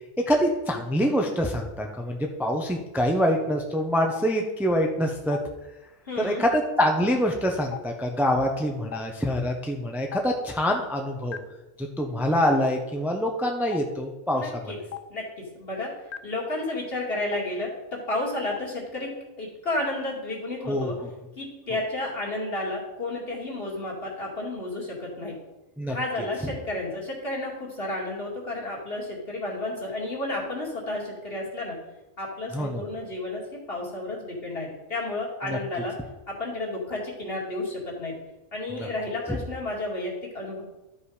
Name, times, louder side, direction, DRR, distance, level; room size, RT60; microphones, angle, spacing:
voice 1, 0.3-5.4 6.2-11.4 11.8-14.7 20.7-20.9 25.8-26.0 32.5-32.8 35.5-35.6 38.7-38.9, equal, ahead, 2 dB, 0.7 m, -25 dB
Stream, 4.1-4.2 5.3-5.4 6.5-6.6 7.7-7.8 8.9-9.0 10.1-10.2 11.3-11.4 12.5-12.6 13.7-13.8 14.9-15.0 16.1-16.2 17.3-17.4 18.5-18.6, left 11 dB, 75° left, 0.3 m, -33 dB
voice 2, 6.1-6.4 14.3-14.8 15.1-15.9 16.2-19.1 19.4-21.0 21.4-25.4 25.9-31.8 32.2-35.9 36.3-38.2 38.5-40.6, left 2 dB, 50° left, -3 dB, 2.6 m, -32 dB
12.5 x 5.6 x 4.9 m, 1.1 s
omnidirectional pair, 1.3 m